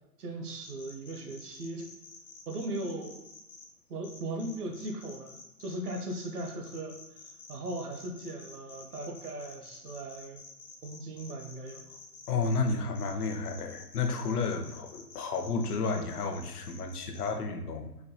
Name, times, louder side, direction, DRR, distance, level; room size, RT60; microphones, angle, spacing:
voice 1, 0.2-1.9 2.5-3.2 3.9-7.0 7.5-10.4 10.8-12.0, right 1 dB, 65° right, 3 dB, 0.9 m, -38 dB
sound 1, 0.6-3.6 4.0-17.3, left 4 dB, 80° left, 1.2 m, -50 dB
voice 2, 12.3-17.9, left 4 dB, 65° left, 5 dB, 0.7 m, -31 dB
4.5 x 2.2 x 2.7 m, 0.93 s
hypercardioid pair, 160°, 50 cm